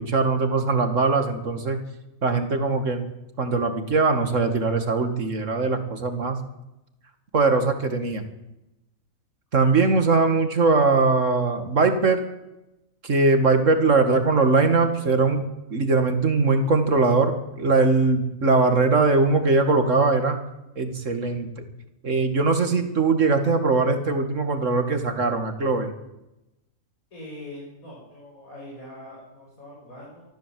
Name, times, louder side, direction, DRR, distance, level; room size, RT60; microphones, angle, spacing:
voice 1, 0.0-1.8 2.2-3.1 3.4-6.4 7.3-8.3 9.5-12.2 13.0-15.4 15.7-20.4 20.8-21.6 22.0-25.9, right 3 dB, 60° right, 7 dB, 2.5 m, -21 dB
voice 2, 27.1-30.2, left 1 dB, 80° left, -5 dB, 7.9 m, -42 dB
24.5 x 14.5 x 7.8 m, 0.95 s
omnidirectional pair, 1.5 m